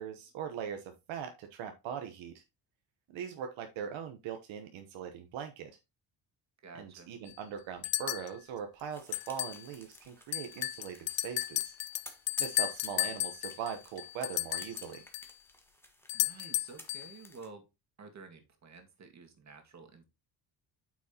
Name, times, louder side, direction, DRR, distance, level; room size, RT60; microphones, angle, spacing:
voice 1, 0.0-2.4 3.1-5.7 6.8-11.7 12.4-15.0, right 8 dB, 85° right, 5 dB, 1.1 m, -41 dB
voice 2, 6.6-7.1 16.1-17.7 18.0-20.0, right 4 dB, 35° right, 5 dB, 2.0 m, -51 dB
sound 1, 7.3-7.4 7.8-8.3 9.1-9.6 9.9-10.0 10.3-15.3 16.1-17.1, left 16 dB, 55° left, 0.6 m, -34 dB
sound 2, 8.9-17.5, left 1 dB, 5° left, 1.4 m, -55 dB
8.5 x 6.2 x 2.8 m, 0.24 s
cardioid pair, 130°, 45 cm